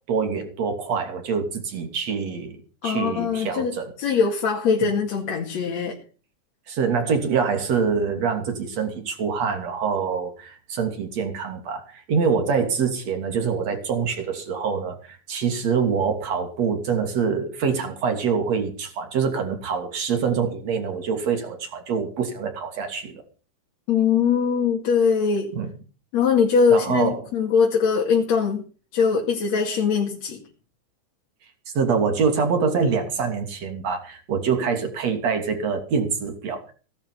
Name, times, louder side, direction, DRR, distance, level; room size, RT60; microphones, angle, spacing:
voice 1, 0.1-2.6 2.8-3.9 4.8-4.9 6.7-23.2 25.5-25.7 26.7-27.2 31.7-36.6, right 6 dB, 55° right, 6 dB, 3.9 m, -25 dB
voice 2, 2.8-3.7 4.0-6.0 23.9-25.5 26.1-28.6 28.9-30.4, left 6 dB, 60° left, 0 dB, 3.4 m, -21 dB
17.5 x 11.5 x 5.6 m, 0.37 s
omnidirectional pair, 3.6 m